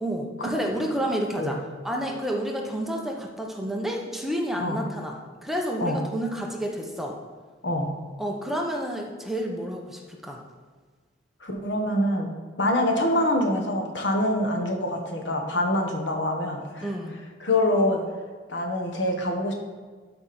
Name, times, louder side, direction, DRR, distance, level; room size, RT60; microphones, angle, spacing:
voice 1, 0.0-7.2 8.2-10.4 16.8-17.1, equal, ahead, 0 dB, 0.9 m, -30 dB
voice 2, 11.4-12.3 12.6-16.9 17.4-18.0 18.5-19.5, left 1 dB, 75° left, 2 dB, 1.4 m, -25 dB
12.5 x 5.1 x 4.3 m, 1.5 s
head